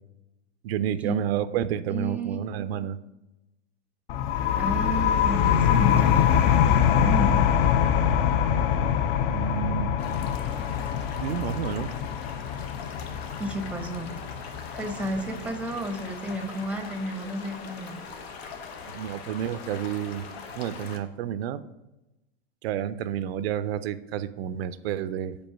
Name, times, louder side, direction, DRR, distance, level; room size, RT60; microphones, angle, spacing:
voice 1, 0.6-3.0 9.3-9.9 11.2-11.9 18.9-20.2 20.6-21.6 22.6-25.4, right 10 dB, 80° right, 13 dB, 0.5 m, -30 dB
voice 2, 1.9-2.4 4.6-7.4 13.4-14.1 14.7-18.0, right 1 dB, 5° right, 6 dB, 0.6 m, -32 dB
sound 1, 4.1-15.5, left 8 dB, 50° left, 0.5 m, -24 dB
sound 2, 10.0-21.0, left 5 dB, 90° left, 0.9 m, -41 dB
5.3 x 4.2 x 5.8 m, 0.98 s
supercardioid pair, 125°, 30 cm